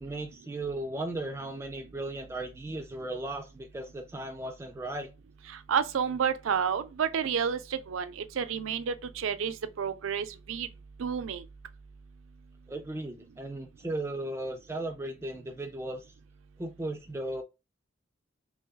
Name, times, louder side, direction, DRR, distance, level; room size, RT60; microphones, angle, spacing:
voice 1, 0.0-5.1 12.7-16.1 16.6-17.4, right 2 dB, 15° right, 0.3 m, -36 dB
voice 2, 5.5-10.7 11.0-11.4, right 7 dB, 85° right, 0.4 m, -30 dB
3.0 x 2.7 x 3.7 m
head